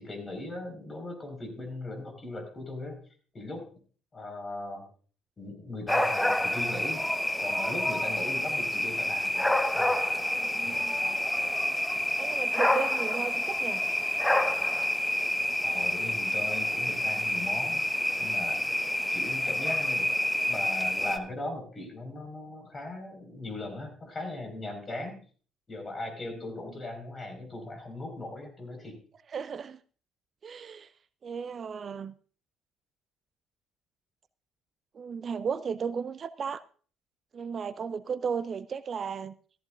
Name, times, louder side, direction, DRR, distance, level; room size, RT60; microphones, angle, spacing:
voice 1, 0.0-3.0 3.3-3.6 4.1-4.8 5.4-7.0 7.4-9.4 9.7-9.9 10.7-10.8 15.6-17.8 18.2-18.7 19.1-20.1 20.4-25.2 25.7-28.9, left 2 dB, 30° left, 4.8 m, -38 dB
sound 1, 5.9-21.2, left 1 dB, 10° left, 1.0 m, -28 dB
voice 2, 10.4-11.0 12.2-13.8 29.3-29.8 30.4-30.9 31.2-32.1 34.9-36.6 37.3-39.3, right 6 dB, 40° right, 0.5 m, -35 dB
14.5 x 14.0 x 2.5 m
figure-of-eight pair, 50°, 0 cm